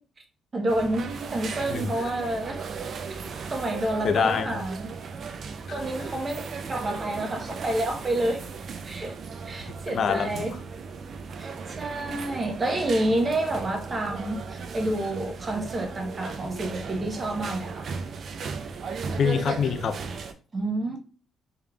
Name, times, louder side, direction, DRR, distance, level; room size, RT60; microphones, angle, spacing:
voice 1, 0.5-2.6 3.5-4.9 5.7-6.4 6.7-8.5 8.8-9.1 9.5-10.6 11.4-17.9 20.5-21.0, right 1 dB, 35° right, 0.9 m, -29 dB
sound 1, 0.7-20.3, right 5 dB, 55° right, 0.4 m, -36 dB
voice 2, 1.7-2.1 4.0-4.6 5.7-5.8 9.9-10.3 19.2-20.0, left 6 dB, 60° left, 0.4 m, -25 dB
3.4 x 3.3 x 2.3 m
cardioid pair, 90°, 0 cm